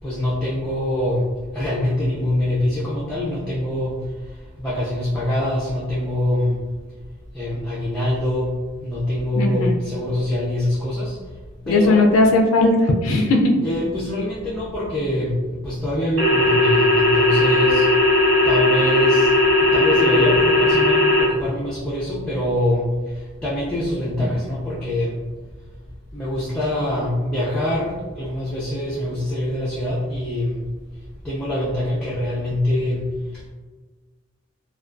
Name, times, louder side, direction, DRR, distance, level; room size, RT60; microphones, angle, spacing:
voice 1, 0.0-6.6 7.3-11.4 11.7-12.0 13.6-25.5 26.1-30.7 30.9-33.5, left 1 dB, 5° left, -9 dB, 0.4 m, -24 dB
voice 2, 9.4-9.8 11.7-13.5, left 2 dB, 75° left, 1 dB, 0.3 m, -17 dB
sound 1, 16.2-21.2, left 2 dB, 60° right, 0.6 m, -17 dB
2.3 x 2.2 x 2.4 m, 1.3 s
head